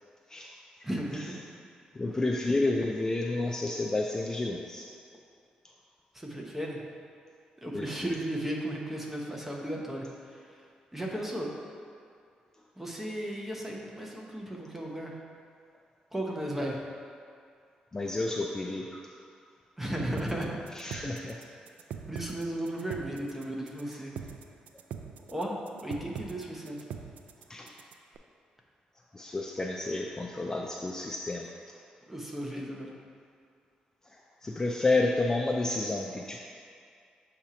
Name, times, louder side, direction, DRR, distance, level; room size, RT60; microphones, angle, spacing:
voice 1, 0.8-1.4 6.1-6.8 7.6-10.6 10.9-11.5 12.8-15.2 16.1-16.8 19.8-20.6 22.1-24.1 25.3-26.8 32.1-32.9, right 1 dB, 10° right, -1 dB, 0.9 m, -35 dB
voice 2, 1.9-4.9 7.7-8.1 17.9-19.0 20.8-21.4 23.9-24.0 27.5-27.7 29.1-31.5 34.1-36.4, left 2 dB, 20° left, 0 dB, 0.3 m, -30 dB
sound 1, 20.2-28.2, right 7 dB, 80° right, 0.3 m, -42 dB
6.9 x 2.9 x 5.0 m, 2.3 s
cardioid pair, 95°, 3 cm